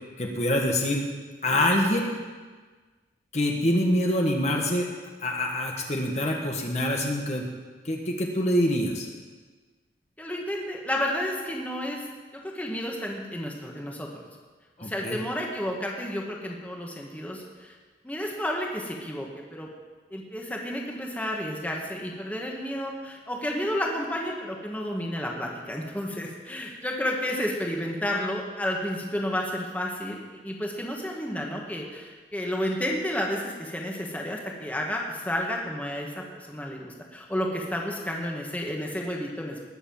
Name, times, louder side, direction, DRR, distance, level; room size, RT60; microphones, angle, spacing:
voice 1, 0.2-1.0 1.4-2.1 3.3-4.9 5.2-7.4 7.8-9.1 14.8-15.2, left 1 dB, 40° left, 1 dB, 1.5 m, -25 dB
voice 2, 10.2-12.0 12.4-14.1 14.8-17.7 18.0-19.7 20.1-30.2 30.4-39.6, equal, 10° left, -1 dB, 1.7 m, -31 dB
19.5 x 7.1 x 7.2 m, 1.4 s
head